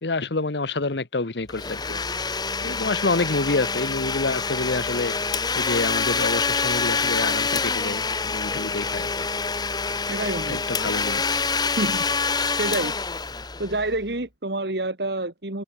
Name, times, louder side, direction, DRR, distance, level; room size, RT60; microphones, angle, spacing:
voice 1, 0.0-2.0 2.6-5.2 5.5-9.1 10.5-11.4, left 3 dB, 75° left, 1.2 m, -27 dB
Domestic sounds home sounds, 1.5-14.1, left 4 dB, 25° left, 1.2 m, -26 dB
voice 2, 10.1-10.6 11.8-12.9 13.6-15.6, right 2 dB, 65° right, 2.4 m, -28 dB
open air
head